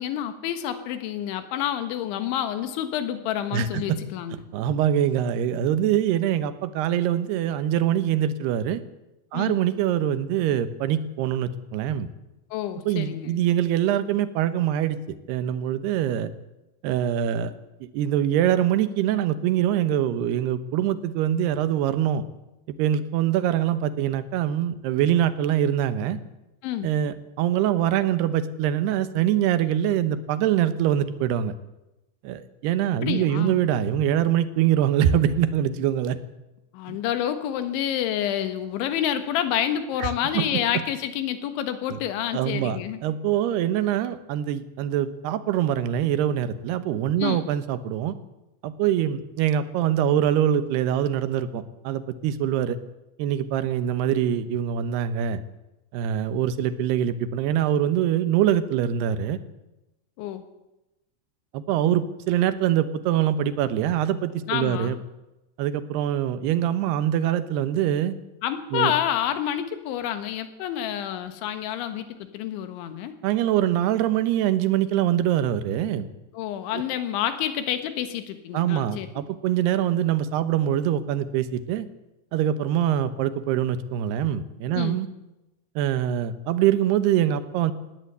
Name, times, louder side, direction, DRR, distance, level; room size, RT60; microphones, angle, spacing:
voice 1, 0.0-4.4 9.3-9.6 12.5-13.4 26.6-26.9 33.0-33.6 36.7-43.0 47.2-47.5 60.2-60.4 64.5-65.0 68.4-73.2 76.3-79.1 84.7-85.0, left 10 dB, 85° left, 9 dB, 3.9 m, -28 dB
voice 2, 3.5-4.0 4.5-8.8 9.3-12.1 12.9-15.0 15.3-16.3 16.8-17.5 17.9-22.2 22.8-26.2 26.8-31.5 32.2-36.2 36.9-37.0 40.0-40.1 40.3-40.5 42.3-48.2 48.6-52.8 53.2-55.4 55.9-59.4 61.5-65.0 65.6-68.1 68.7-68.9 73.2-76.1 76.7-76.8 78.5-81.9 82.3-85.1 85.8-87.7, right 10 dB, 75° right, 13 dB, 2.8 m, -24 dB
19.5 x 17.0 x 8.1 m, 0.96 s
omnidirectional pair, 5.3 m